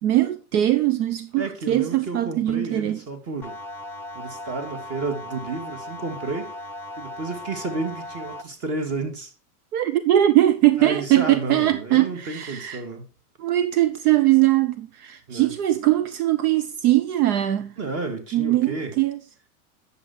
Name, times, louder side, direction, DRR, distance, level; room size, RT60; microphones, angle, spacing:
voice 1, 0.0-3.0 9.7-12.8 13.4-17.7 18.3-19.2, right 14 dB, 75° right, 0.9 m, -21 dB
voice 2, 1.4-3.6 4.1-6.6 7.0-9.3 10.8-13.1 15.3-15.5 17.8-19.0, right 3 dB, 30° right, 2.3 m, -31 dB
sound 1, 3.4-8.4, left 1 dB, 5° left, 0.5 m, -37 dB
9.6 x 7.1 x 4.4 m
supercardioid pair, 125°, 45 cm